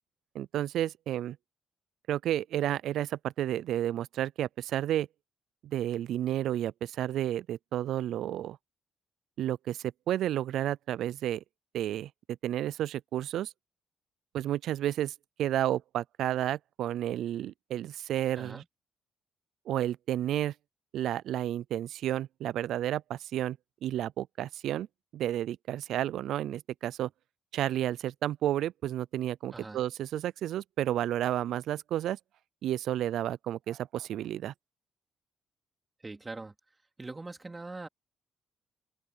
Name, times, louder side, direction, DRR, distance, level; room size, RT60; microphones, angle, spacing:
voice 1, 0.3-1.4 2.1-5.1 5.6-8.6 9.4-11.4 11.7-13.5 14.3-18.6 19.7-20.5 20.9-24.9 25.1-27.1 27.5-32.2 32.6-34.5, right 12 dB, 80° right, 0.4 m, -31 dB
voice 2, 29.5-29.8 36.0-36.5 37.0-37.9, right 3 dB, 20° right, 3.6 m, -42 dB
open air
cardioid pair, 90°, 0 cm